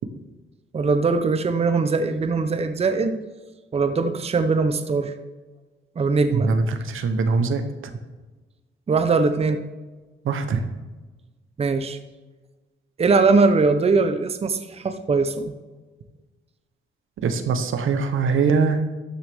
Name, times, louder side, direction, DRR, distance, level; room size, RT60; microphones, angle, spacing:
voice 1, 0.7-3.2 3.7-5.1 6.0-6.5 8.9-9.6 11.6-12.0 13.0-15.5, right 4 dB, 30° right, 8 dB, 0.6 m, -21 dB
voice 2, 6.3-7.6 10.2-10.6 17.2-18.8, right 4 dB, 80° right, 8 dB, 1.0 m, -22 dB
12.5 x 6.5 x 3.5 m, 1.2 s
cardioid pair, 110°, 21 cm